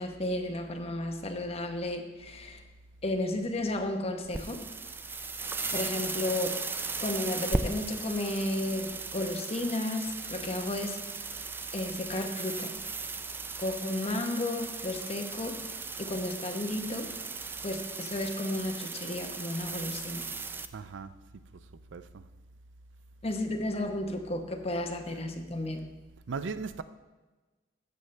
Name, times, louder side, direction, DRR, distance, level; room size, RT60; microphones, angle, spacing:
voice 1, 0.0-2.6 3.0-4.6 5.7-6.6 7.0-11.0 11.7-12.8 13.6-15.6 16.0-17.1 17.6-20.3 23.2-25.9, left 1 dB, 35° left, 0.9 m, -33 dB
sound 1, 4.2-20.7, right 3 dB, 10° right, 0.3 m, -37 dB
voice 2, 20.7-21.1 21.9-22.2 26.3-26.8, right 5 dB, 90° right, 0.5 m, -37 dB
12.5 x 8.2 x 3.2 m
head